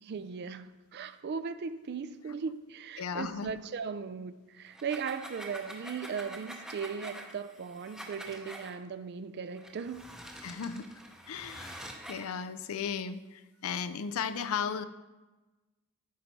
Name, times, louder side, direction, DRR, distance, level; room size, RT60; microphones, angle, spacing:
voice 1, 0.0-10.1, right 6 dB, 50° right, 0.3 m, -38 dB
voice 2, 3.0-3.5 10.4-11.0 11.3-14.8, left 6 dB, 75° left, 0.4 m, -36 dB
sound 1, 4.7-8.7 9.5-12.3, right 1 dB, 5° right, 0.7 m, -46 dB
8.6 x 5.3 x 4.4 m
head